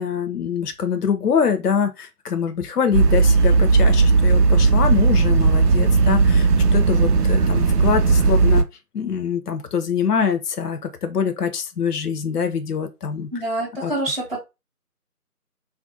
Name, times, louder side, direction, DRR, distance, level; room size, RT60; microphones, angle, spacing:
voice 1, 0.0-8.6 8.9-13.3 13.8-13.9, left 6 dB, 75° left, 0.6 m, -24 dB
sound 1, 2.9-8.6, right 4 dB, 80° right, 0.6 m, -16 dB
voice 2, 13.3-14.4, right 1 dB, 40° right, 0.6 m, -26 dB
3.3 x 2.5 x 2.5 m
figure-of-eight pair, 175°, 46 cm